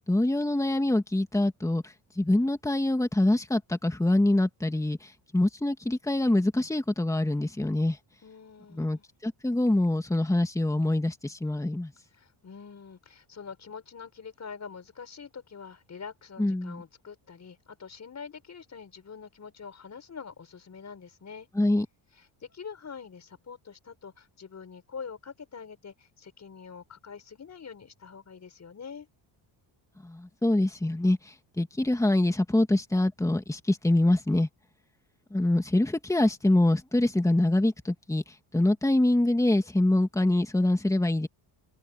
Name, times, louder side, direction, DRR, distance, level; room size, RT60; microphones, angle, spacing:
voice 1, 0.1-8.0 8.7-11.9 16.4-16.8 21.6-21.9 30.0-34.5 35.3-41.3, left 1 dB, 5° left, 2.3 m, -25 dB
voice 2, 8.2-9.0 12.2-21.5 22.4-29.1, left 6 dB, 35° left, 5.5 m, -45 dB
open air
cardioid pair, 125°, 48 cm